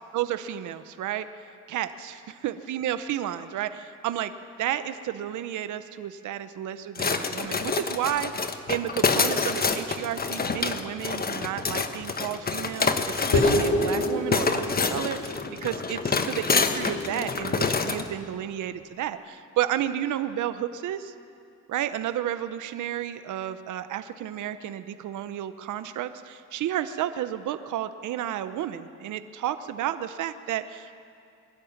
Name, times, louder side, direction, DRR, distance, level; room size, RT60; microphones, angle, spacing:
voice 1, 0.1-1.3 1.7-4.3 4.6-21.1 21.7-30.9, right 11 dB, 75° right, 11 dB, 0.9 m, -32 dB
sound 1, 7.0-18.1, left 4 dB, 30° left, 1.3 m, -27 dB
sound 2, 13.3-18.1, left 1 dB, 55° left, 3.6 m, -29 dB
22.0 x 13.0 x 9.6 m, 2.4 s
cardioid pair, 90°, 30 cm